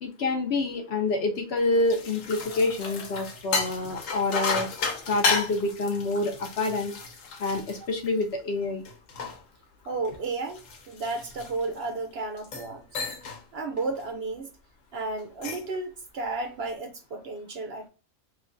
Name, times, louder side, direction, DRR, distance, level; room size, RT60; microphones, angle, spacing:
voice 1, 0.0-4.7 5.1-6.9 7.4-8.8, left 2 dB, 60° left, 0.8 m, -27 dB
sound 1, 1.6-8.4 8.9-11.9 12.4-12.7 13.0-13.4 13.8-14.1 15.2-15.8, left 4 dB, 80° left, 1.1 m, -33 dB
voice 2, 9.9-13.0 13.5-14.5 14.9-17.9, right 3 dB, 65° right, 0.7 m, -33 dB
3.1 x 2.3 x 3.7 m
omnidirectional pair, 1.4 m